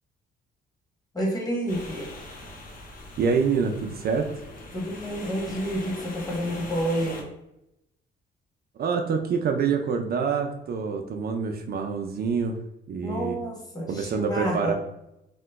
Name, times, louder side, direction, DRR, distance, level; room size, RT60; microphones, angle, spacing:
voice 1, 1.1-2.1 4.7-7.2 13.0-14.7, equal, 20° left, -2 dB, 1.2 m, -29 dB
sound 1, 1.7-7.2, left 2 dB, 45° left, 0.8 m, -41 dB
voice 2, 3.2-4.3 8.8-12.6 12.9-13.4 13.9-14.7, right 5 dB, 50° right, 4 dB, 0.4 m, -26 dB
2.9 x 2.1 x 3.4 m, 0.86 s
cardioid pair, 90°, 20 cm